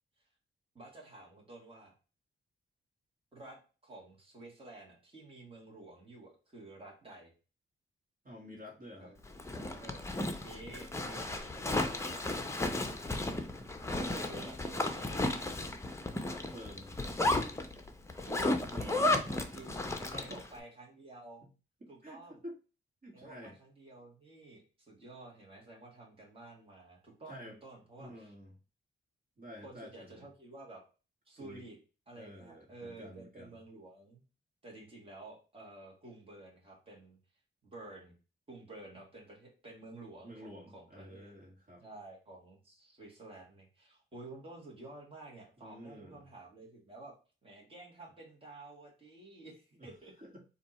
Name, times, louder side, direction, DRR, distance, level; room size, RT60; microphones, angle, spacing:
voice 1, 0.8-1.9 3.3-7.3 9.0-9.2 9.6-10.1 10.4-12.3 14.0-15.5 16.6-17.0 18.3-19.0 19.3-21.5 21.9-22.4 23.1-28.3 29.6-30.8 31.3-31.8 32.1-34.2 34.6-37.2 37.6-38.1 38.5-41.3 41.8-47.2 47.4-50.1, right 2 dB, 25° right, -2 dB, 1.8 m, -51 dB
voice 2, 8.2-9.1 12.8-13.0 13.9-14.4 16.3-17.0 18.7-19.2 20.1-20.4 21.4-21.5 21.8-22.5 23.0-23.6 27.3-27.6 28.0-28.5 29.4-30.3 31.4-31.6 32.1-33.6 40.2-41.8 45.6-46.2 49.8-49.9 50.2-50.4, equal, 40° right, -3 dB, 1.7 m, -50 dB
Zipper (clothing), 9.3-20.5, left 2 dB, 15° left, 0.7 m, -34 dB
4.3 x 2.7 x 4.2 m, 0.33 s
cardioid pair, 100°, 21 cm